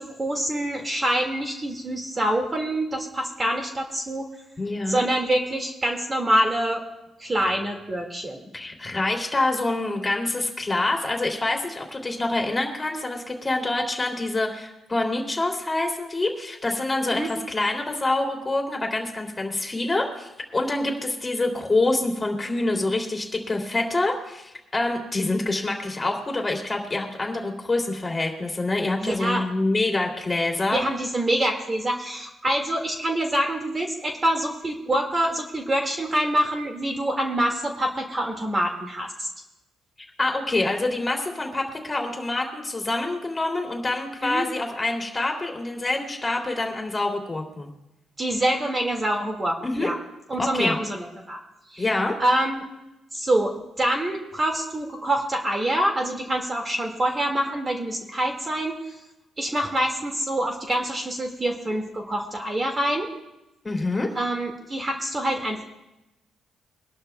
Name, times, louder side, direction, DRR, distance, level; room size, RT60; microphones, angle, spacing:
voice 1, 0.0-4.3 4.9-6.8 7.2-8.4 17.1-17.3 29.0-29.4 30.7-39.3 44.2-44.5 48.2-50.0 50.3-51.4 51.7-51.8 52.2-52.6 53.1-58.9 59.4-63.1 64.2-65.6, right 1 dB, 25° right, 2 dB, 2.0 m, -25 dB
voice 2, 4.6-5.0 8.5-30.8 40.2-47.7 49.6-49.9 50.4-50.7 51.8-52.2 63.6-64.1, left 2 dB, 20° left, 1 dB, 2.8 m, -26 dB
23.5 x 11.5 x 2.3 m, 0.96 s
cardioid pair, 90°, 0 cm